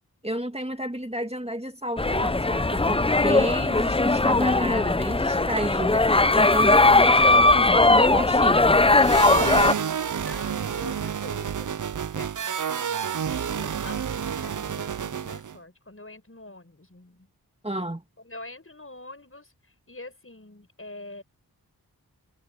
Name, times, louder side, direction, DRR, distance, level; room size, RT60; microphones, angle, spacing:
voice 1, 0.2-8.8 17.6-18.0, right 1 dB, 15° right, 2.4 m, -31 dB
sound 1, 2.0-9.7, left 2 dB, 15° left, 0.6 m, -19 dB
sound 2, 9.0-15.6, right 8 dB, 55° right, 0.6 m, -29 dB
voice 2, 10.2-11.8 12.1-12.6 13.6-17.3 18.2-21.2, left 2 dB, 35° left, 6.7 m, -45 dB
cardioid pair, 45°, 38 cm